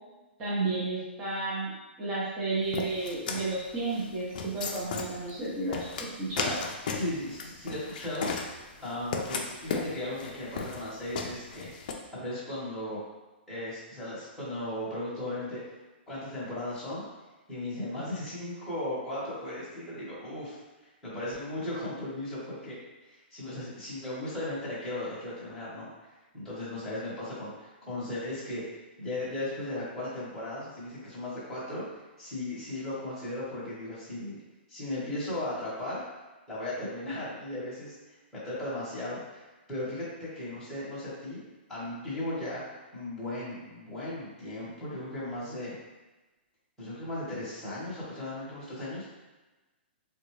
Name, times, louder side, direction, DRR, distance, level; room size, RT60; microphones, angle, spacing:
voice 1, 0.4-1.7 2.0-5.9 6.2-6.6, right 2 dB, 15° right, -8 dB, 0.7 m, -32 dB
sound 1, 2.7-11.9, left 5 dB, 45° left, 0.4 m, -35 dB
voice 2, 6.9-13.0 13.5-15.6 16.1-17.0 17.5-20.6 21.0-22.8 23.1-25.9 26.3-28.6 29.0-31.8 32.2-34.4 34.7-36.0 36.5-37.9 38.3-41.4 41.7-42.6 42.9-45.7 46.8-49.2, left 1 dB, 5° left, -11 dB, 1.0 m, -36 dB
3.7 x 2.3 x 3.1 m, 1.1 s
hypercardioid pair, 175°, 6 cm